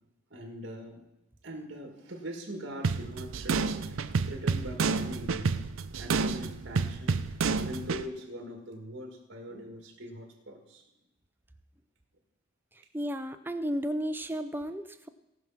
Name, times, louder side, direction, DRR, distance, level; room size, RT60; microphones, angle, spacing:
voice 1, 0.3-1.0 1.4-5.6 6.0-7.2 7.6-10.8, equal, 60° right, 2 dB, 2.0 m, -42 dB
sound 1, 2.8-8.0, right 4 dB, 85° right, 0.5 m, -29 dB
voice 2, 12.7-15.1, equal, 10° right, 9 dB, 0.5 m, -33 dB
18.0 x 6.0 x 5.8 m, 0.94 s
head